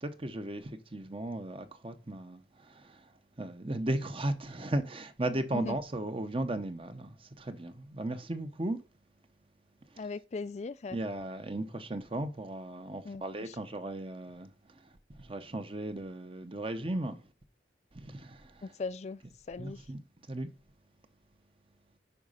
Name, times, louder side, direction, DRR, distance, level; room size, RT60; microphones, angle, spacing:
voice 1, 0.0-8.8 9.9-10.0 10.9-17.2 17.9-18.7 19.6-20.0 20.3-20.5, right 1 dB, 30° right, 0.8 m, -36 dB
voice 2, 10.0-11.0 13.0-13.6 18.6-19.2 19.5-19.9, left 4 dB, 40° left, 0.3 m, -38 dB
10.0 x 5.0 x 5.6 m
head